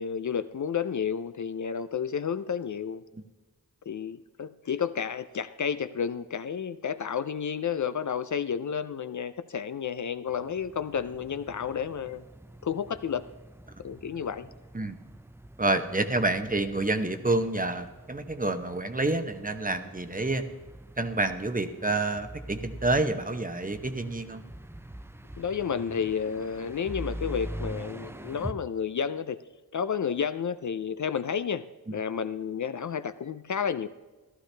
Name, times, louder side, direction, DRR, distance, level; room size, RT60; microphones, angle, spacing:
voice 1, 0.0-3.0 3.9-12.2 12.6-13.2 13.8-14.5 25.4-29.4 29.7-31.6 31.9-33.9, left 7 dB, 55° left, 12 dB, 0.5 m, -31 dB
sound 1, 10.3-28.5, right 1 dB, 5° right, 0.5 m, -44 dB
voice 2, 15.6-20.4 21.0-24.4, right 2 dB, 20° right, 8 dB, 0.8 m, -28 dB
14.5 x 13.0 x 3.3 m, 1.2 s
wide cardioid pair, 90°, 37 cm